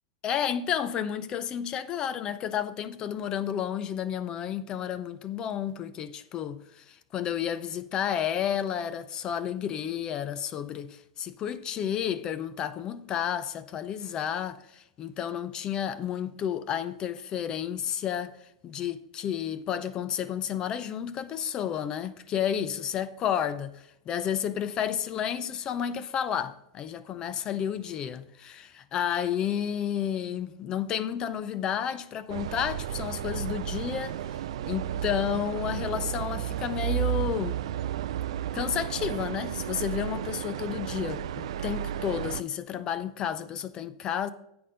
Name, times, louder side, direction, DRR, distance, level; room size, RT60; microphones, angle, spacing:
voice 1, 0.2-34.4 34.6-37.6 38.5-44.3, left 9 dB, 25° left, 0.4 m, -31 dB
sound 1, 32.3-42.4, right 11 dB, 75° right, 0.4 m, -33 dB
8.5 x 5.9 x 5.2 m
supercardioid pair, 160°, 3 cm